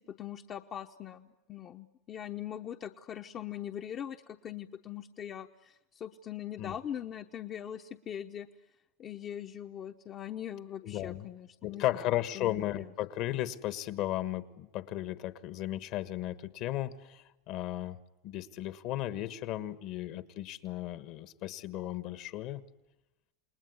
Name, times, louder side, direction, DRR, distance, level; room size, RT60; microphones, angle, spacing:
voice 1, 0.1-8.5 9.0-12.1 12.3-12.9, left 10 dB, 35° left, 5 dB, 0.9 m, -41 dB
voice 2, 10.8-11.3 11.6-18.0 18.2-22.6, left 14 dB, 55° left, 13 dB, 1.4 m, -35 dB
29.0 x 20.0 x 9.6 m, 0.98 s
supercardioid pair, 110°, 0 cm